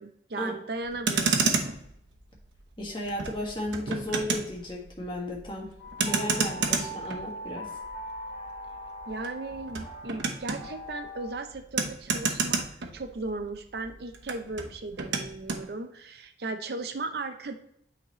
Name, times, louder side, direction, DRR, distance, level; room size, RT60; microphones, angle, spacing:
voice 1, 0.0-1.4 9.1-12.7 12.9-17.5, right 3 dB, 60° right, 7 dB, 0.6 m, -36 dB
Motor vehicle (road), 0.8-13.5 13.7-15.7, right 4 dB, 90° right, 0.9 m, -31 dB
voice 2, 2.8-5.7 6.0-7.7, left 1 dB, 25° left, -1 dB, 1.5 m, -34 dB
sound 1, 5.8-11.3, equal, 5° right, 2.5 m, -41 dB
8.9 x 4.0 x 3.0 m, 0.73 s
head